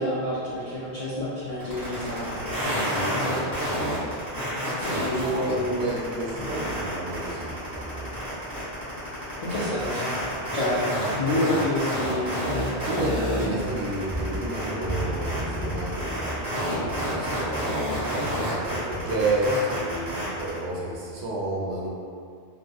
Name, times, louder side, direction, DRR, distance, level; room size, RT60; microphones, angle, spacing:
voice 1, 0.0-4.2 4.8-5.9 6.4-6.5 9.4-10.1 10.5-12.3, left 1 dB, 60° left, -10 dB, 0.4 m, -29 dB
sound 1, 1.6-20.6, equal, 15° right, 1.4 m, -29 dB
voice 2, 4.8-8.2 11.2-11.4 12.8-21.9, right 1 dB, 90° right, -3 dB, 0.9 m, -31 dB
sound 2, 13.6-19.5, right 1 dB, 40° right, 0.5 m, -36 dB
2.7 x 2.6 x 2.2 m, 2.2 s
omnidirectional pair, 1.1 m